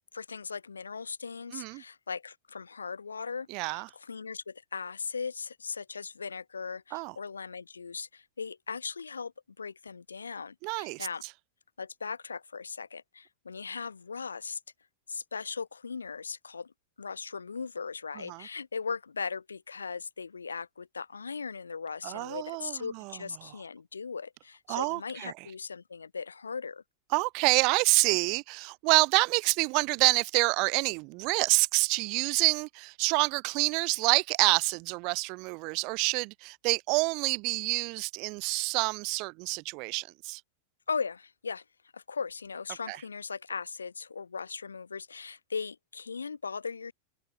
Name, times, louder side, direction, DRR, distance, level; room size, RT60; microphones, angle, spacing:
voice 1, 0.1-9.3 9.6-11.2 11.8-14.6 15.1-16.7 17.0-26.8 40.9-41.6 41.9-46.9, left 5 dB, 75° left, 3.9 m, -38 dB
voice 2, 1.5-1.8 3.5-3.9 6.9-7.1 10.6-11.1 18.3-18.5 22.0-23.1 24.7-25.3 27.1-40.4 42.9-43.0, right 30 dB, 45° right, 0.9 m, -27 dB
figure-of-eight pair, 90°, 0 cm